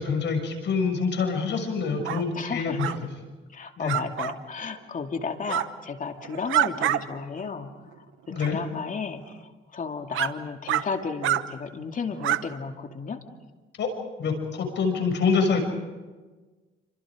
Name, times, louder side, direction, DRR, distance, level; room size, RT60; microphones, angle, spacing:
voice 1, 0.0-2.9 3.8-4.0 8.3-8.6 13.8-13.9 14.2-15.6, left 5 dB, 65° left, 4 dB, 6.5 m, -26 dB
sound 1, 2.0-2.2 2.8-3.0 3.9-4.3 5.4-5.7 6.2-7.0 7.4-7.5 8.4-8.5 9.3-9.4 10.1-10.3 10.7-10.8 11.2-11.4 12.2-12.4, right 14 dB, 85° right, 1.0 m, -26 dB
voice 2, 2.4-3.0 3.5-7.7 8.3-9.4 9.7-13.2, left 5 dB, 40° left, 4 dB, 2.5 m, -33 dB
28.5 x 26.0 x 5.1 m, 1.3 s
cardioid pair, 90°, 20 cm